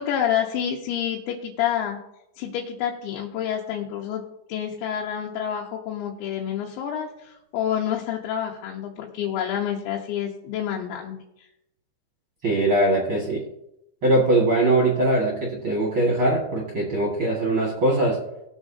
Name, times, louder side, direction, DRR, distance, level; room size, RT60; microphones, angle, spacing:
voice 1, 0.0-2.0 2.4-4.2 4.5-11.1, left 9 dB, 90° left, -1 dB, 3.3 m, -28 dB
voice 2, 12.4-13.4 14.0-18.2, right 1 dB, 50° right, -2 dB, 1.5 m, -21 dB
20.0 x 7.2 x 2.7 m, 0.83 s
omnidirectional pair, 5.1 m